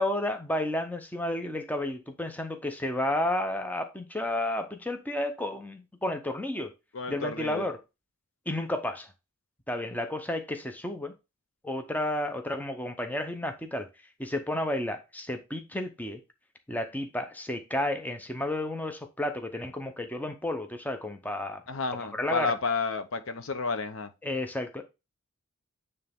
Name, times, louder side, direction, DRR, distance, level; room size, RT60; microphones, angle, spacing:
voice 1, 0.0-6.7 7.1-7.8 8.5-9.1 9.7-11.1 11.6-13.9 14.2-16.2 16.7-21.6 22.1-22.5 24.2-24.8, left 1 dB, 5° left, 0.7 m, -32 dB
voice 2, 6.9-7.6 21.7-24.1, left 4 dB, 60° left, 0.8 m, -31 dB
9.2 x 3.3 x 3.6 m
head